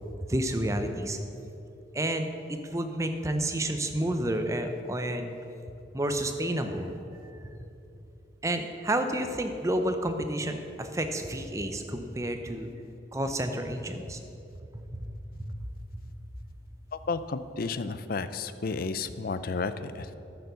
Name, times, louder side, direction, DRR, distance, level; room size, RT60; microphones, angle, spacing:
voice 1, 0.3-1.2 1.9-5.3 5.9-7.0 7.3-7.4 8.4-12.7 13.1-14.2 14.7-15.5, right 1 dB, 15° right, 6 dB, 0.6 m, -30 dB
voice 2, 16.9-20.1, left 4 dB, 50° left, 12 dB, 0.5 m, -32 dB
10.0 x 6.8 x 6.9 m, 2.8 s
head